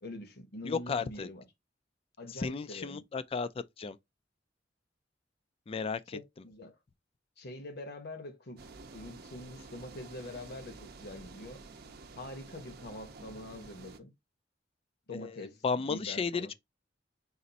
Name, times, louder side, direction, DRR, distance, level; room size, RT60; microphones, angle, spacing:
voice 1, 0.0-1.5 2.2-3.0 6.1-6.7 7.4-8.6 8.9-11.6 12.2-14.1 15.1-16.5, left 1 dB, 60° left, 1.0 m, -44 dB
voice 2, 0.6-1.3 2.3-3.5 3.8-4.0 5.7-6.2 15.1-16.5, left 5 dB, 30° left, 0.3 m, -34 dB
sound 1, 8.6-14.0, right 3 dB, 60° right, 0.6 m, -50 dB
4.1 x 2.5 x 4.0 m
head